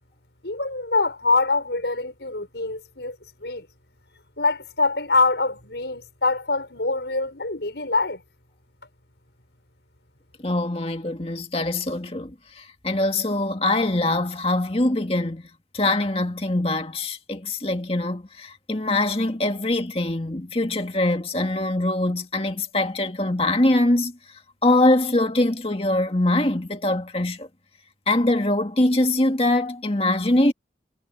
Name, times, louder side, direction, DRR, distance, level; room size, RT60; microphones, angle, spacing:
voice 1, 0.4-3.2 3.4-3.7 4.4-8.2, left 3 dB, 75° left, 5.2 m, -24 dB
voice 2, 10.4-15.4 15.7-24.2 24.6-27.5 28.1-30.5, left 2 dB, 35° left, 1.9 m, -23 dB
head